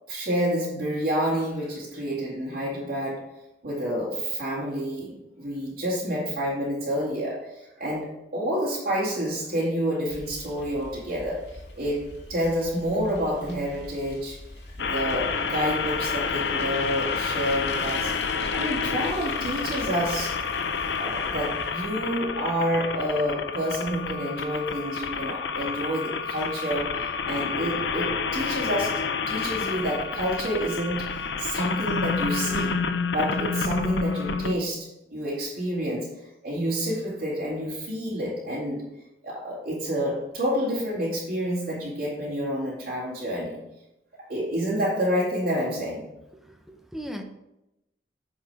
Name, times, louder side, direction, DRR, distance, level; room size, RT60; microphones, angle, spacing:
voice 1, 0.1-3.2 3.6-12.0 12.3-14.4 14.8-18.1 18.5-20.4 21.0-32.8 33.1-36.1 36.4-38.8 39.2-43.6 44.3-46.1, equal, 60° right, -7 dB, 2.4 m, -29 dB
Bicycle, 10.1-21.7, left 2 dB, 75° left, 2.0 m, -43 dB
sound 1, 14.8-34.5, left 5 dB, 90° left, 0.6 m, -29 dB
voice 2, 46.5-47.2, equal, ahead, 4 dB, 0.8 m, -37 dB
8.7 x 4.8 x 4.9 m, 0.88 s
head